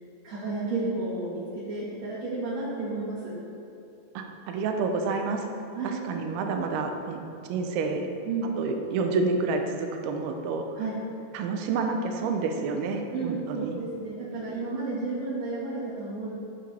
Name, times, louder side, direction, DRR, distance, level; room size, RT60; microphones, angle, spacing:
voice 1, 0.2-3.3 5.7-5.9 8.3-8.5 10.8-10.9 13.1-16.3, right 3 dB, 55° right, -10 dB, 2.1 m, -32 dB
voice 2, 4.1-5.5 5.8-7.2 7.5-8.1 8.6-10.7 11.3-13.8, right 4 dB, 75° right, 4 dB, 2.5 m, -29 dB
16.0 x 7.1 x 3.4 m, 2.6 s
omnidirectional pair, 5.1 m